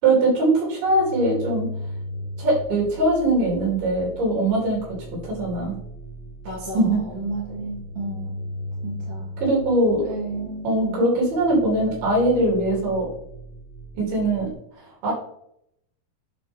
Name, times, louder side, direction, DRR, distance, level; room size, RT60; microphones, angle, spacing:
voice 1, 0.0-1.7 2.4-4.8 5.2-5.8 6.7-7.0 9.4-10.0 10.6-13.1 14.0-14.5 15.0-15.1, right 2 dB, 70° right, -4 dB, 5.2 m, -21 dB
sound 1, 0.9-14.5, equal, 80° left, 3.7 m, -37 dB
voice 2, 6.4-8.3 8.8-9.4 10.0-11.1, right 2 dB, 15° right, -6 dB, 3.2 m, -33 dB
11.0 x 4.8 x 3.6 m, 0.72 s
omnidirectional pair, 4.5 m